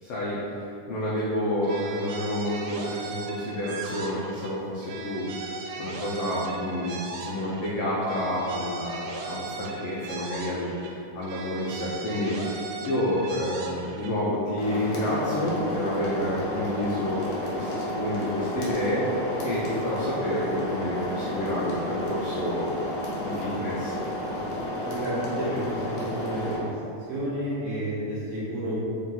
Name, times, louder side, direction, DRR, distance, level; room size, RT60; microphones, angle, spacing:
voice 1, 0.0-17.2 17.5-19.0 19.4-22.7 23.2-23.9, left 1 dB, 90° left, -7 dB, 1.4 m, -29 dB
sound 1, 1.6-4.5 4.8-7.7 8.0-10.9 11.2-14.1, right 3 dB, 90° right, 2.1 m, -38 dB
sound 2, 14.6-26.6, left 1 dB, 70° left, 1.7 m, -31 dB
voice 2, 24.8-26.7 27.1-28.8, equal, 70° right, -9 dB, 1.7 m, -31 dB
4.8 x 2.8 x 3.7 m, 2.7 s
omnidirectional pair, 3.6 m